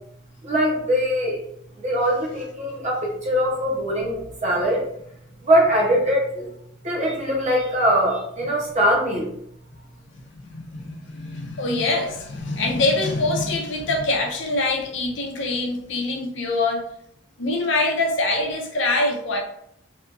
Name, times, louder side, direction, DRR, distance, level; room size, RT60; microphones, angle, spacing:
voice 1, 0.4-1.4 1.8-4.8 5.4-6.5 6.8-9.3, equal, 35° right, -3 dB, 0.8 m, -22 dB
voice 2, 10.3-16.8 17.4-19.4, left 2 dB, 70° left, 1 dB, 0.6 m, -24 dB
2.7 x 2.4 x 2.5 m, 0.74 s
head